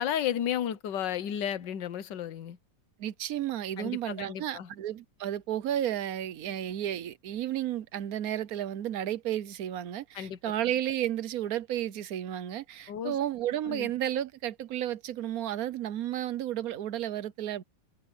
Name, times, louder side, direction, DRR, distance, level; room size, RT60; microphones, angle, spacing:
voice 1, 0.0-2.6 3.8-4.7 10.1-10.4 12.9-13.2 13.6-13.9, left 10 dB, 75° left, 1.6 m, -33 dB
voice 2, 3.0-17.6, right 11 dB, 60° right, 1.1 m, -32 dB
omnidirectional pair, 1.9 m